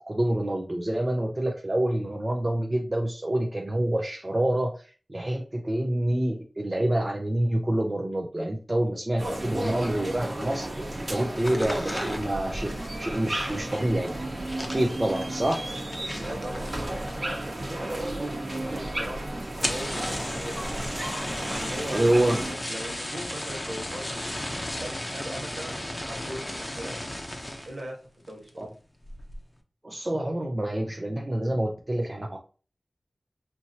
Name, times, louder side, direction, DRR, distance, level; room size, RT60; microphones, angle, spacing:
voice 1, 0.1-10.7 11.0-14.3 14.6-15.7 21.9-22.4 28.6-28.7 29.8-32.4, right 1 dB, 30° right, 1 dB, 0.6 m, -27 dB
sound 1, 9.2-22.5, right 1 dB, 50° right, 1.1 m, -33 dB
sound 2, 11.3-17.5 17.7-18.3 18.6-18.7 18.9-19.0 19.5-27.8 28.2-28.6 29.0-29.4, left 1 dB, 25° left, 0.7 m, -35 dB
voice 2, 16.1-17.1 17.4-20.8 21.5-22.1 22.7-24.4 24.8-27.0 27.6-28.7, right 1 dB, 65° right, -1 dB, 1.5 m, -39 dB
4.4 x 2.8 x 2.8 m, 0.37 s
wide cardioid pair, 70°, 0 cm